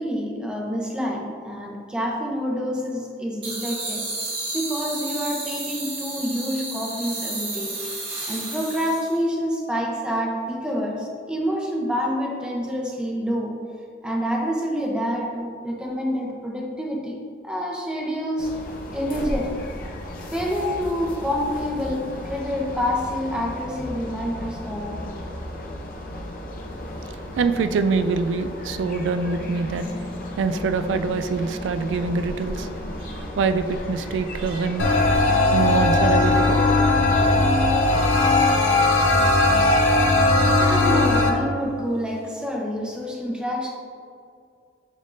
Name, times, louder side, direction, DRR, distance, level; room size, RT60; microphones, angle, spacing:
voice 1, 0.0-4.0 4.5-7.8 8.3-13.6 14.0-17.2 17.4-18.5 18.9-19.6 20.3-25.1 40.4-43.7, equal, 5° right, -2 dB, 0.7 m, -27 dB
sound 1, 3.4-9.2, right 2 dB, 30° right, 1.4 m, -32 dB
sound 2, 18.4-38.1, left 1 dB, 45° left, 0.7 m, -34 dB
voice 2, 26.9-30.1 30.4-32.7 33.0-34.9 35.5-36.6 37.2-37.3, right 4 dB, 80° right, 9 dB, 0.3 m, -25 dB
sound 3, 34.8-41.3, left 2 dB, 85° left, 0.8 m, -18 dB
10.0 x 3.5 x 2.6 m, 2.3 s
head